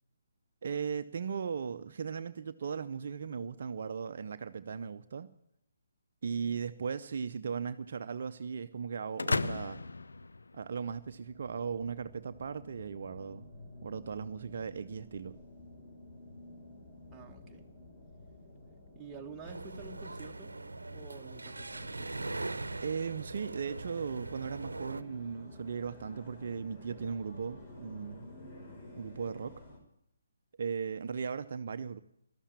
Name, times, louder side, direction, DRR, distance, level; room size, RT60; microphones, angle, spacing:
voice 1, 0.6-5.3 6.2-9.8 10.5-13.4 13.8-15.4 22.8-28.3 29.0-29.6 30.6-32.0, right 6 dB, 50° right, 0.7 m, -37 dB
sound 1, 9.2-11.1, left 3 dB, 70° left, 0.7 m, -34 dB
sound 2, 10.8-29.8, left 2 dB, 35° left, 5.1 m, -52 dB
voice 2, 17.1-17.7 19.0-20.6 20.9-22.3, right 4 dB, 10° right, 1.7 m, -49 dB
sound 3, 19.4-25.0, right 2 dB, 75° right, 0.9 m, -41 dB
13.0 x 13.0 x 8.4 m
figure-of-eight pair, 140°, 0 cm